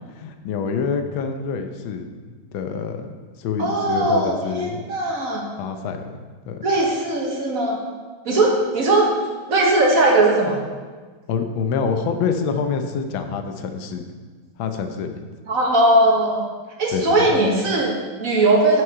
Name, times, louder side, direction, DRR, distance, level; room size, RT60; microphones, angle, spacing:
voice 1, 0.1-3.1 3.4-4.8 5.6-6.2 6.5-6.6 11.3-14.0 14.6-15.2 16.9-17.3, left 5 dB, 75° left, 6 dB, 1.5 m, -26 dB
voice 2, 3.6-5.4 6.6-7.8 8.2-9.1 9.5-10.6 15.5-16.4 16.8-18.8, right 2 dB, 45° right, -1 dB, 1.3 m, -19 dB
7.7 x 6.3 x 4.5 m, 1.4 s
omnidirectional pair, 2.3 m